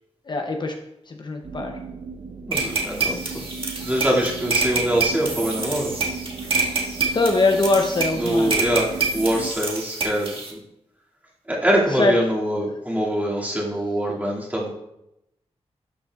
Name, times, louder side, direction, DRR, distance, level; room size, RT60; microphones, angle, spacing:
voice 1, 0.3-0.7 1.1-1.8 7.1-8.5 12.0-12.1, left 2 dB, 40° left, 3 dB, 0.6 m, -22 dB
sound 1, 1.4-9.5, right 5 dB, 75° right, 0.7 m, -36 dB
voice 2, 2.5-3.4 3.8-5.9 8.1-10.6 11.5-14.7, equal, 15° right, -5 dB, 2.2 m, -24 dB
sound 2, 2.5-10.5, right 4 dB, 50° right, 1.7 m, -27 dB
12.0 x 7.2 x 2.4 m, 0.85 s
wide cardioid pair, 145°, 11 cm